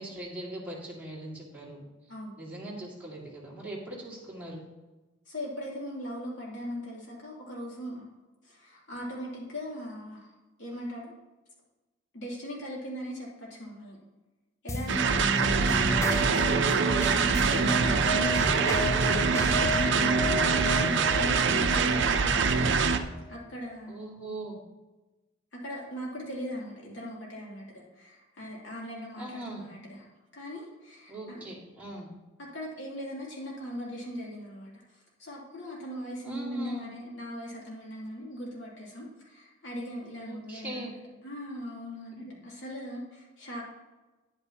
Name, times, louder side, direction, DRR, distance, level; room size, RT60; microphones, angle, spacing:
voice 1, 0.0-1.9 2.4-4.7 18.0-18.7 20.1-20.6 23.9-24.6 29.2-29.7 31.1-32.1 36.2-36.9 40.2-40.9, right 1 dB, 10° right, -5 dB, 2.2 m, -41 dB
voice 2, 5.3-8.1 8.4-10.3 10.6-11.1 12.1-14.0 14.6-15.3 16.2-16.6 17.1-22.8 23.3-24.0 25.5-30.0 30.3-31.5 32.4-41.0 41.2-43.6, equal, 70° left, -4 dB, 2.9 m, -39 dB
sound 1, 14.7-23.4, left 1 dB, 15° left, 0.4 m, -33 dB
sound 2, 14.9-23.0, right 5 dB, 65° right, 0.6 m, -24 dB
9.8 x 8.9 x 2.9 m, 1.2 s
head